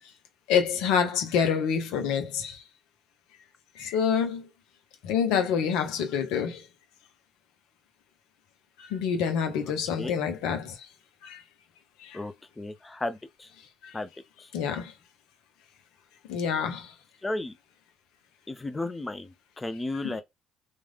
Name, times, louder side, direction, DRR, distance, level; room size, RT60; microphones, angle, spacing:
voice 1, 0.5-2.2 3.9-4.4 5.1-6.5 8.9-10.6 14.5-14.8 16.3-16.8, left 7 dB, 70° left, 0.8 m, -26 dB
voice 2, 12.1-13.5 13.9-14.1 17.2-17.5 18.5-20.2, left 2 dB, 20° left, 0.6 m, -34 dB
3.2 x 2.5 x 2.4 m
hypercardioid pair, 55°, 0 cm